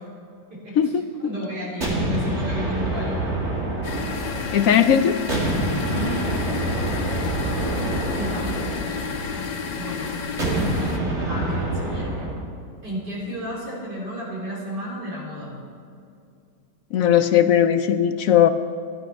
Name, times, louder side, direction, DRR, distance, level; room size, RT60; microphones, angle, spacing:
voice 1, 0.5-0.9 1.2-3.2 5.9-6.2 8.1-8.7 9.8-10.1 11.3-12.3 12.8-15.5, equal, 75° right, -5 dB, 4.2 m, -33 dB
sound 1, 1.8-4.8 5.3-9.5 10.4-12.5, right 2 dB, 40° right, 2.6 m, -26 dB
sound 2, 3.8-11.0, left 5 dB, 90° left, 1.8 m, -31 dB
voice 2, 4.5-5.2 16.9-18.5, left 9 dB, 70° left, 10 dB, 0.8 m, -18 dB
14.0 x 11.0 x 5.7 m, 2.5 s
omnidirectional pair, 1.8 m